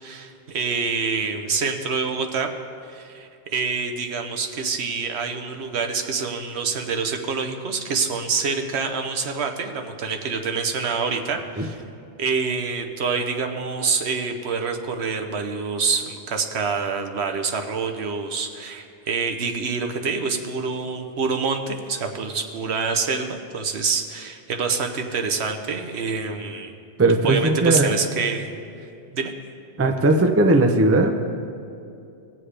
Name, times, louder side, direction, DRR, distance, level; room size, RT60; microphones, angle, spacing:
voice 1, 0.0-2.5 2.9-11.8 12.2-26.7 27.2-28.5 29.1-29.3, right 5 dB, 75° right, 5 dB, 1.1 m, -26 dB
voice 2, 27.0-28.0 29.8-31.1, right 2 dB, 20° right, 5 dB, 0.5 m, -18 dB
18.0 x 7.5 x 3.3 m, 2.6 s
omnidirectional pair, 1.1 m